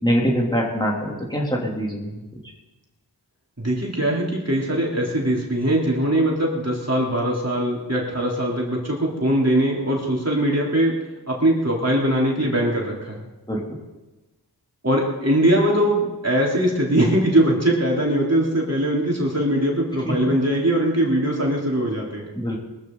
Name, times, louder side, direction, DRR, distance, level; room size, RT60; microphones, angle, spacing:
voice 1, 0.0-2.2 13.5-13.6 22.3-22.6, equal, 10° left, -3 dB, 3.1 m, -23 dB
voice 2, 3.6-11.0 11.3-13.2 14.8-22.3, right 1 dB, 40° right, -3 dB, 3.6 m, -21 dB
22.5 x 14.0 x 4.0 m, 1.1 s
wide cardioid pair, 45°, 41 cm